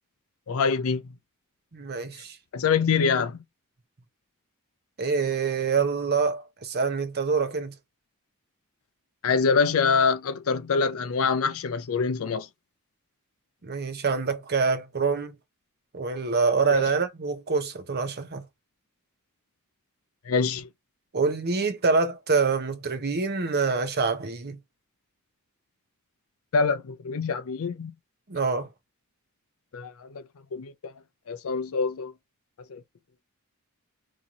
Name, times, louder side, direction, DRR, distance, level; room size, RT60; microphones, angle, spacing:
voice 1, 0.5-1.0 2.5-3.4 9.2-12.5 16.7-16.8 20.3-20.7 26.5-27.9 29.7-30.2 30.5-30.9 31.3-32.1 32.7-32.8, left 5 dB, 65° left, 0.5 m, -25 dB
voice 2, 1.7-2.4 5.0-7.7 13.6-15.3 15.9-18.4 21.1-24.6 28.3-28.7, right 4 dB, 45° right, 0.8 m, -26 dB
3.0 x 2.7 x 3.6 m
head